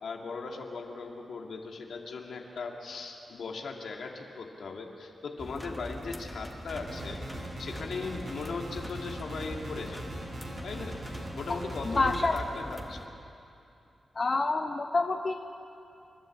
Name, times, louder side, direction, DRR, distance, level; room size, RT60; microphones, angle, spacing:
voice 1, 0.0-10.1 10.6-11.0 11.3-13.1, left 4 dB, 80° left, 1 dB, 2.2 m, -38 dB
sound 1, 5.4-13.1, left 1 dB, 5° left, 1.8 m, -42 dB
sound 2, 6.7-12.2, right 2 dB, 65° right, 6.1 m, -41 dB
voice 2, 11.9-12.4 14.2-15.3, left 3 dB, 45° left, 4 dB, 0.9 m, -27 dB
27.5 x 12.0 x 8.6 m, 2.7 s
cardioid pair, 70°, 0 cm